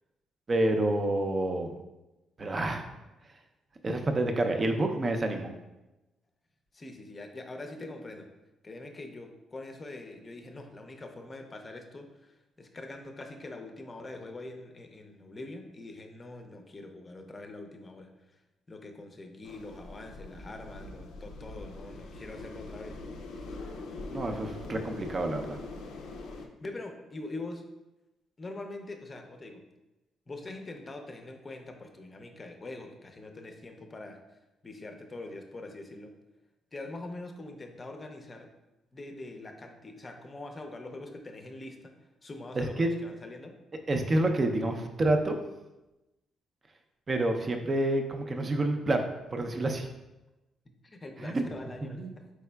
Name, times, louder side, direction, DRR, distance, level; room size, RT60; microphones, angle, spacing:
voice 1, 0.5-1.7 2.4-2.8 3.8-5.5 24.1-25.6 42.6-42.9 43.9-45.4 47.1-49.9 51.2-51.5 51.9-52.1, right 1 dB, 35° right, 5 dB, 0.5 m, -28 dB
voice 2, 6.7-8.3 8.6-18.1 18.7-23.0 26.4-27.6 28.4-29.6 30.3-34.2 34.6-36.1 36.7-38.5 38.9-41.9 42.2-43.5 50.8-52.3, left 2 dB, 30° left, 4 dB, 0.6 m, -43 dB
sound 1, 19.4-26.5, left 2 dB, 80° left, 0.4 m, -42 dB
4.6 x 4.0 x 2.3 m, 1.0 s
cardioid pair, 90°, 0 cm